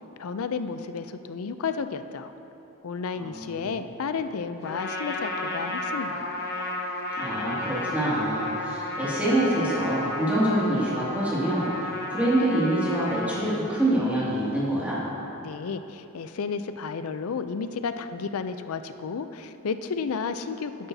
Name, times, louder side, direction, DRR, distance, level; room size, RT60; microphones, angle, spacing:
voice 1, 0.2-2.3 2.8-6.3 15.4-20.9, left 5 dB, 85° left, 10 dB, 0.5 m, -32 dB
voice 2, 3.2-3.7 7.2-11.7 12.1-15.0, right 1 dB, 5° right, -9 dB, 2.2 m, -25 dB
Trumpet, 4.6-13.6, left 2 dB, 50° left, 0.9 m, -33 dB
11.5 x 11.0 x 2.7 m, 3.0 s
head